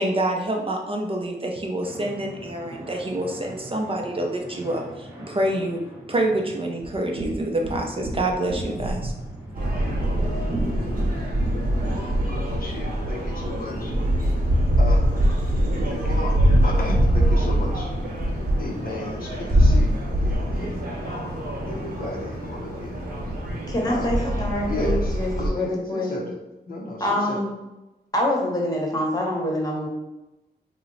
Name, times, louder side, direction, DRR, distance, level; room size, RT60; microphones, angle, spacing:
voice 1, 0.0-5.8 6.1-9.1, right 1 dB, 30° right, 1 dB, 0.5 m, -27 dB
sound 1, 1.8-12.3, right 1 dB, 10° right, 0.8 m, -41 dB
sound 2, 6.8-12.2, right 1 dB, 85° right, 0.5 m, -32 dB
sound 3, 9.6-25.5, equal, 55° right, 0.9 m, -23 dB
voice 2, 11.5-13.9 14.8-15.2 15.9-17.9 18.6-23.0 23.9-24.1 24.6-26.4 26.7-27.4, left 2 dB, 60° left, 0 dB, 0.6 m, -34 dB
voice 3, 23.7-26.1 27.0-27.5 28.1-29.9, left 1 dB, 20° left, -2 dB, 0.9 m, -25 dB
2.9 x 2.0 x 3.8 m, 0.99 s
wide cardioid pair, 85°, 17 cm